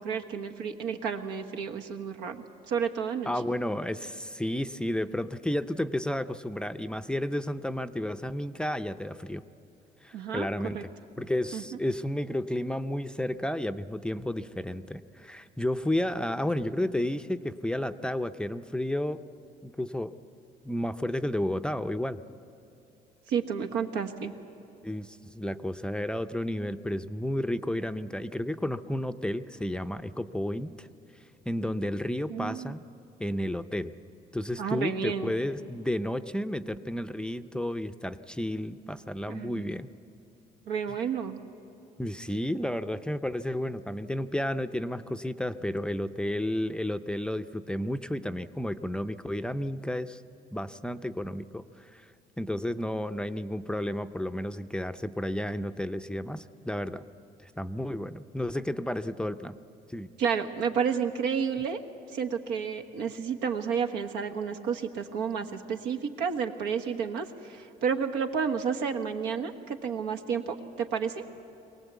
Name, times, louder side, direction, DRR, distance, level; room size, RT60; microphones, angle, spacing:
voice 1, 0.0-3.3 10.1-10.5 10.7-10.8 11.5-11.6 23.3-24.3 32.3-32.7 34.6-35.3 39.3-39.6 40.7-41.4 60.2-61.8 62.1-71.2, right 6 dB, 90° right, 6 dB, 1.4 m, -31 dB
voice 2, 3.3-9.4 10.0-10.9 11.2-19.2 19.6-20.1 20.6-22.2 24.8-30.9 31.5-32.8 33.2-33.9 34.3-39.9 42.0-50.2 50.5-52.1 52.4-57.0 57.4-59.5 59.9-60.1, left 1 dB, 5° left, 9 dB, 0.5 m, -32 dB
23.0 x 18.0 x 8.2 m, 2.9 s
cardioid pair, 110°, 17 cm